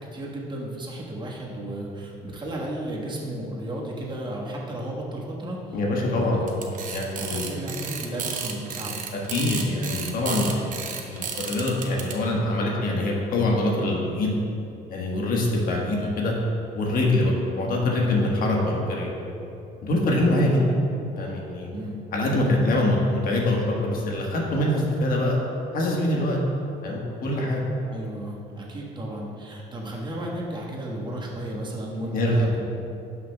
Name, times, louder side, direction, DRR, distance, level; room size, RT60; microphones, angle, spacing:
voice 1, 0.1-5.7 6.0-6.6 7.2-9.0 20.5-20.8 21.7-22.0 27.9-32.7, right 1 dB, 25° right, -3 dB, 1.5 m, -34 dB
voice 2, 5.7-6.4 6.9-7.5 9.1-10.7 10.9-14.3 14.9-16.3 16.7-19.1 19.8-20.6 21.2-21.7 22.1-25.4 25.7-26.4 26.8-27.6 32.1-32.4, left 1 dB, 60° left, -2 dB, 1.5 m, -24 dB
sound 1, 6.5-12.1, right 6 dB, 50° right, 0.9 m, -32 dB
11.5 x 6.0 x 2.3 m, 2.7 s
cardioid pair, 110°, 17 cm